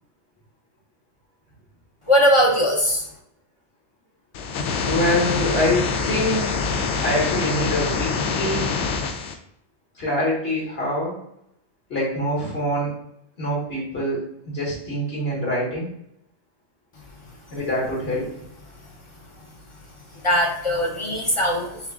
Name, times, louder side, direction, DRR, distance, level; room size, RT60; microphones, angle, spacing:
voice 1, 2.1-3.1 20.1-21.8, equal, 30° left, -1 dB, 0.7 m, -20 dB
sound 1, 4.3-9.3, left 5 dB, 80° left, 0.9 m, -25 dB
voice 2, 4.8-6.5 7.0-8.7 10.0-11.2 11.9-12.9 13.4-14.2 14.5-15.9 17.5-18.3, left 1 dB, 60° left, -5 dB, 1.8 m, -24 dB
6.8 x 2.5 x 2.4 m, 0.76 s
omnidirectional pair, 1.2 m